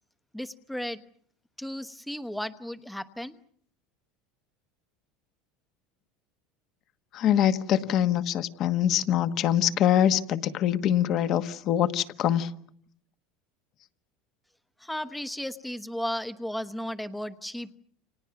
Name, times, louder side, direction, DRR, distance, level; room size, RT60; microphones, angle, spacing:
voice 1, 0.3-1.0 1.6-3.4 14.8-17.8, equal, 5° left, 10 dB, 1.1 m, -34 dB
voice 2, 7.1-12.5, left 10 dB, 40° left, 10 dB, 1.3 m, -24 dB
29.5 x 26.5 x 6.0 m, 0.63 s
cardioid pair, 155°, 0 cm